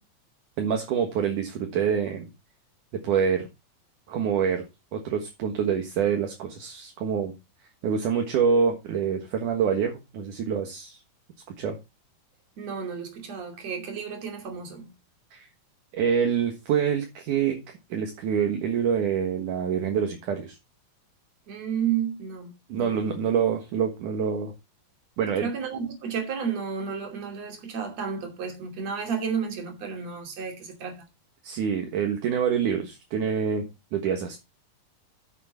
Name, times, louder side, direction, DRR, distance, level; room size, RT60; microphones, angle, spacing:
voice 1, 0.6-2.3 3.0-3.5 4.1-4.6 4.9-7.3 7.8-11.0 11.6-11.8 15.3-15.5 15.9-17.6 17.9-20.6 22.7-24.5 25.2-25.5 31.4-33.7 33.9-34.4, right 7 dB, 65° right, 2.8 m, -26 dB
voice 2, 12.6-14.9 21.5-23.2 25.4-31.0, right 7 dB, 50° right, 3.7 m, -32 dB
10.0 x 7.4 x 4.2 m
omnidirectional pair, 4.1 m